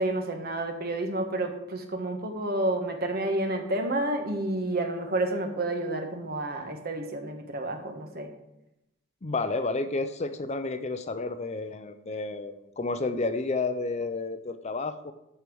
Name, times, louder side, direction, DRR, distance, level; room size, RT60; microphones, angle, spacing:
voice 1, 0.0-8.3, right 1 dB, 45° right, 4 dB, 1.4 m, -30 dB
voice 2, 9.2-15.1, left 3 dB, 30° left, 9 dB, 0.5 m, -31 dB
13.5 x 4.6 x 6.2 m, 0.88 s
head